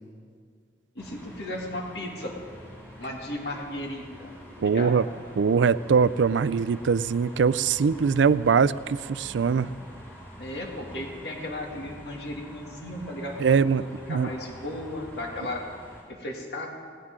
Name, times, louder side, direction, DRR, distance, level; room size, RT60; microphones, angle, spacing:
voice 1, 1.0-2.6 3.0-4.3 4.6-5.0 10.4-15.6 16.1-16.7, left 1 dB, 65° left, 0 dB, 2.3 m, -35 dB
sound 1, 1.0-16.0, equal, 10° left, 4.0 m, -46 dB
voice 2, 4.6-5.1 5.4-9.7 13.4-13.8 14.1-14.3, right 6 dB, 90° right, 16 dB, 0.4 m, -22 dB
19.0 x 18.0 x 3.7 m, 2.1 s
head